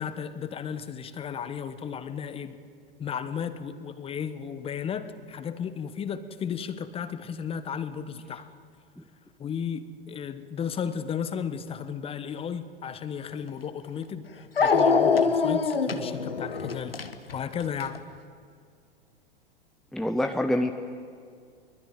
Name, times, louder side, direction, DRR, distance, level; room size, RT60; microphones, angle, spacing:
voice 1, 0.0-2.6 3.0-8.5 9.4-14.3 14.6-17.0 17.3-18.0, left 7 dB, 20° left, 12 dB, 1.2 m, -34 dB
Dog, 13.5-13.6 14.6-18.0, left 5 dB, 80° left, 1.5 m, -24 dB
voice 2, 19.9-20.7, left 1 dB, ahead, 6 dB, 0.9 m, -25 dB
23.0 x 21.5 x 9.3 m, 2.2 s
figure-of-eight pair, 95°, 29 cm